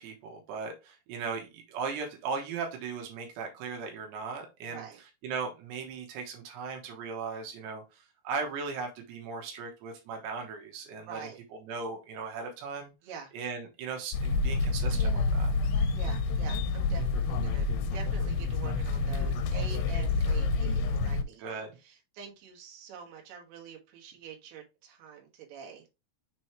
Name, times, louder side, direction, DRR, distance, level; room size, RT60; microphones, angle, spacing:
voice 1, 0.0-4.8 5.2-11.3 11.6-12.9 13.3-15.5 21.4-21.8, right 5 dB, 90° right, 2 dB, 3.4 m, -37 dB
voice 2, 4.6-5.0 11.1-11.4 13.0-13.3 15.9-25.9, right 7 dB, 70° right, 1 dB, 3.3 m, -46 dB
sound 1, 14.1-21.2, left 3 dB, 80° left, 2.6 m, -28 dB
6.8 x 3.2 x 4.5 m, 0.26 s
omnidirectional pair, 4.8 m